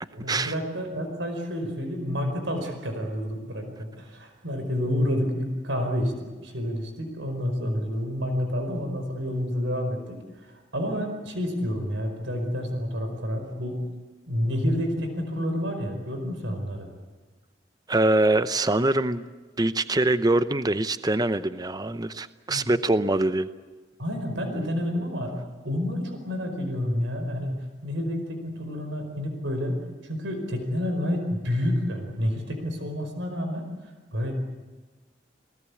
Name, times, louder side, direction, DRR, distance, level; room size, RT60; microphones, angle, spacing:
voice 1, 0.1-6.1 6.4-13.9 14.3-16.9 22.5-22.7 24.0-33.7 34.1-34.3, equal, 75° right, 5 dB, 4.9 m, -29 dB
voice 2, 17.9-19.2 19.6-23.5, right 2 dB, 20° right, 13 dB, 0.7 m, -23 dB
28.0 x 19.0 x 8.5 m, 1.3 s
head